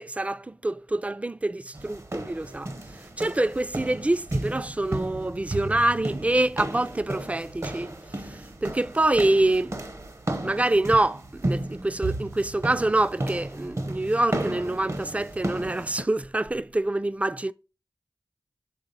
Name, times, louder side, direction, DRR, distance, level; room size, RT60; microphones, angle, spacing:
voice 1, 0.0-2.7 3.2-7.9 8.2-9.8 10.4-17.5, right 2 dB, 20° right, 0.3 m, -26 dB
sound 1, 1.7-16.0, right 1 dB, 40° right, 0.7 m, -33 dB
7.0 x 3.5 x 4.0 m
cardioid pair, 45°, 7 cm